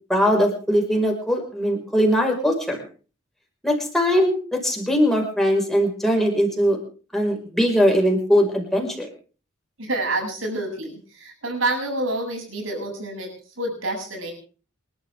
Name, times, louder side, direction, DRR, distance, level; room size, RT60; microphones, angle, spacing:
voice 1, 0.1-2.8 3.6-6.8 7.1-9.1, equal, ahead, 1 dB, 5.2 m, -20 dB
voice 2, 9.8-13.3 13.6-14.3, right 2 dB, 85° right, 1 dB, 7.9 m, -28 dB
28.5 x 12.0 x 3.6 m, 0.38 s
head